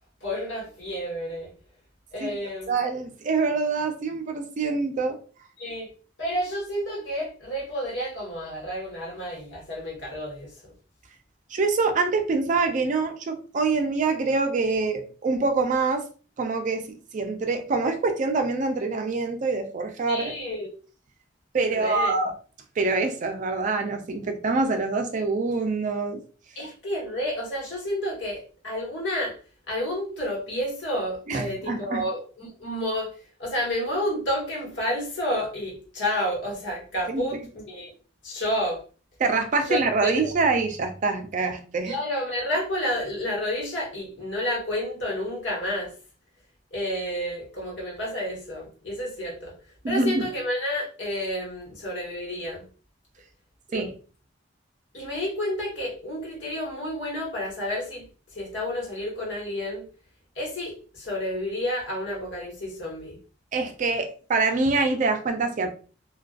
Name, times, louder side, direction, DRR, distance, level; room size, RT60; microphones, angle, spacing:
voice 1, 0.2-1.5 2.1-2.7 5.6-5.9 6.2-10.7 20.1-20.7 21.7-22.1 26.6-29.4 29.7-33.1 33.4-37.9 38.2-38.8 39.7-40.3 41.9-45.9 46.7-49.5 49.9-52.6 53.7-53.9 54.9-58.0 58.3-59.8 60.3-63.2, equal, 75° left, 1.1 m, -30 dB
voice 2, 2.7-5.2 11.5-16.0 16.4-20.4 21.5-22.3 22.8-26.2 31.3-32.0 37.1-37.3 39.2-42.0 49.8-50.2 53.7-53.9 63.5-65.7, right 3 dB, 45° right, 0.4 m, -25 dB
2.5 x 2.2 x 2.3 m
head